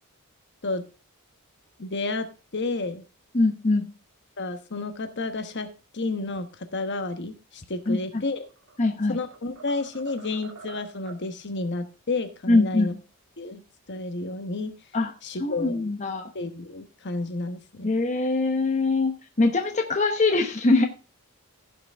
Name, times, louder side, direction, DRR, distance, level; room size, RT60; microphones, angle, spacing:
voice 1, 1.8-2.3 2.5-3.0 4.4-5.7 5.9-8.4 9.1-12.9 13.4-13.6 13.9-14.7 15.2-15.8 16.3-17.9, left 2 dB, 55° left, 9 dB, 1.1 m, -31 dB
voice 2, 3.3-3.9 7.9-8.2 8.8-9.2 12.5-13.0 14.9-15.1 15.4-16.3 17.8-20.9, left 3 dB, 35° left, 4 dB, 0.9 m, -23 dB
sound 1, 8.4-8.8 9.2-11.3, right 5 dB, 85° right, 1.9 m, -46 dB
15.5 x 5.9 x 3.5 m, 0.32 s
head